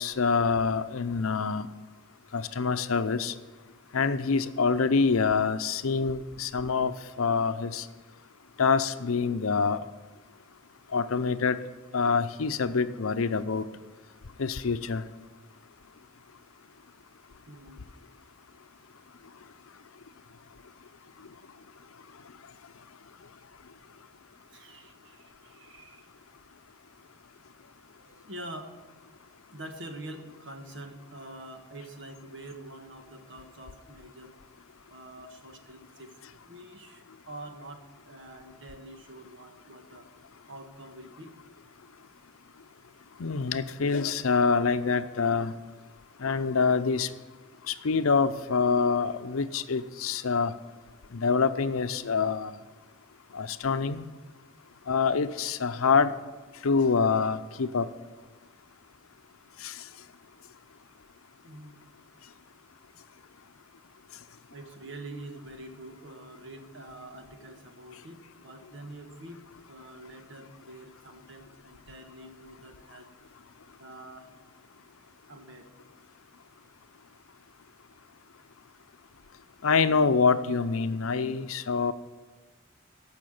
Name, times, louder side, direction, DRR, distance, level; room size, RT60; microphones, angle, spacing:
voice 1, 0.0-1.7 2.3-3.3 3.9-6.9 7.2-7.8 8.6-9.8 10.9-11.6 11.9-13.6 14.4-15.0 43.2-45.5 46.2-47.1 47.7-50.5 51.1-52.5 53.3-54.1 54.9-56.1 56.6-57.9 59.6-59.7 79.6-81.9, left 5 dB, 85° left, 11 dB, 0.6 m, -26 dB
voice 2, 17.5-17.8 24.5-26.1 28.0-28.8 29.5-34.4 34.9-40.1 40.5-41.4 61.4-61.7 64.5-73.1 73.8-74.3 75.3-75.7, right 1 dB, 60° right, 5 dB, 1.5 m, -46 dB
14.0 x 5.8 x 8.7 m, 1.3 s
head